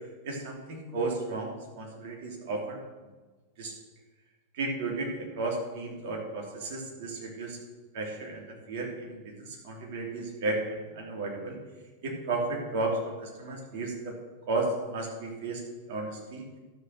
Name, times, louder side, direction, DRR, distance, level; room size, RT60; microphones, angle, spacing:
voice 1, 0.2-2.8 3.6-3.7 4.6-7.6 7.9-11.6 12.0-14.1 14.5-15.6 15.9-16.4, right 2 dB, 50° right, -1 dB, 3.1 m, -33 dB
12.0 x 6.7 x 6.6 m, 1.3 s
figure-of-eight pair, 90°, 0 cm